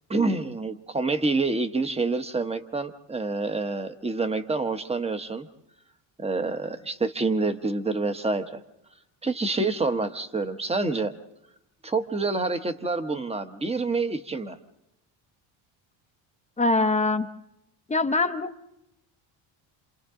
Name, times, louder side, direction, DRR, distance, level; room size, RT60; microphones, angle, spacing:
voice 1, 0.1-5.5 6.2-8.6 9.2-11.1 11.8-14.6, right 3 dB, 15° right, 9 dB, 1.1 m, -27 dB
voice 2, 16.6-17.3 17.9-18.5, left 2 dB, 15° left, 8 dB, 0.8 m, -23 dB
27.5 x 27.0 x 3.8 m, 0.85 s
cardioid pair, 130°, 47 cm